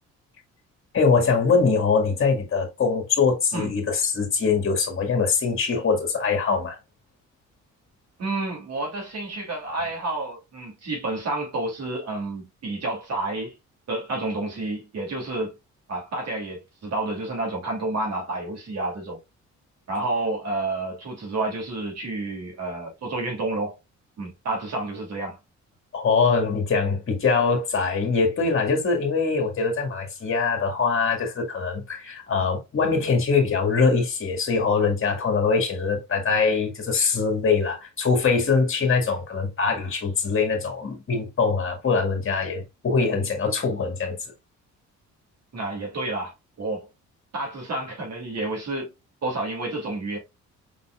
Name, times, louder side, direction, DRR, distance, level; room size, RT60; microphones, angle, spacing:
voice 1, 0.9-6.8 25.9-44.2, left 5 dB, 45° left, 1.9 m, -23 dB
voice 2, 8.2-13.5 13.9-15.5 15.9-19.2 19.9-23.8 24.2-25.4 45.5-46.9 47.3-48.9 49.2-50.2, right 2 dB, 55° right, 2.7 m, -30 dB
5.3 x 4.0 x 2.4 m
cardioid pair, 90°, 30 cm